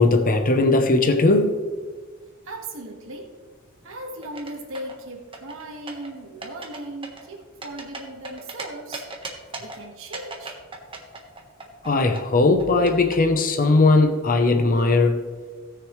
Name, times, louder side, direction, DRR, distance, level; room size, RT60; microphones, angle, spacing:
voice 1, 0.0-1.6 11.8-15.2, left 3 dB, 40° left, 6 dB, 0.8 m, -18 dB
voice 2, 2.4-3.3 3.8-9.1 9.6-10.6, right 1 dB, 65° right, 1 dB, 1.7 m, -37 dB
sound 1, 4.2-5.0 5.3-6.1 6.4-6.8 7.0-8.6 8.9-9.8 10.1-11.9 12.1-13.2, right 3 dB, 25° right, 1.3 m, -36 dB
18.0 x 6.7 x 3.2 m, 1.5 s
head